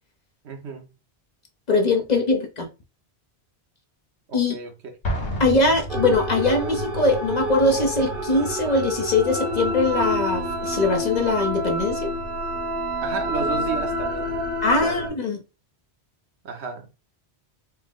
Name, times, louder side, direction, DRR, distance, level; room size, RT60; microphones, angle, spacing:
voice 1, 0.4-0.9 2.1-2.3 4.3-4.7 13.0-14.4 14.8-15.1 16.4-16.9, right 4 dB, 90° right, 1.2 m, -32 dB
voice 2, 1.7-2.7 4.3-4.5 5.4-12.1 14.6-15.4, left 2 dB, 45° left, 0.7 m, -21 dB
Explosion, 5.0-6.8, equal, 90° left, 1.4 m, -30 dB
sound 1, 5.9-15.1, equal, 55° right, 1.2 m, -28 dB
4.6 x 2.0 x 3.6 m
omnidirectional pair, 1.1 m